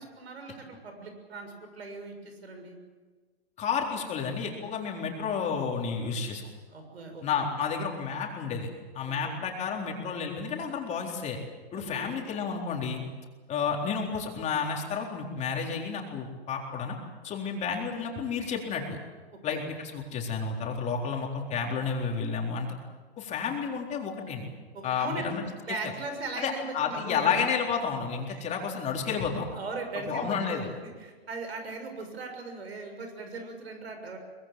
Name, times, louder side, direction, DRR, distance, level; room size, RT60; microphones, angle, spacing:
voice 1, 0.0-2.8 6.7-7.5 9.1-9.3 11.7-12.1 19.3-19.6 24.7-25.3 25.6-27.4 28.3-28.4 29.5-34.2, right 3 dB, 85° right, 5 dB, 6.8 m, -39 dB
voice 2, 3.6-6.4 7.2-8.7 8.9-11.4 11.7-13.0 13.5-17.0 17.2-19.0 19.4-22.8 23.2-24.5 24.8-25.8 26.4-29.5 30.0-30.7, left 6 dB, 20° left, 1 dB, 3.9 m, -31 dB
23.5 x 21.5 x 7.7 m, 1.4 s
hypercardioid pair, 135°, 31 cm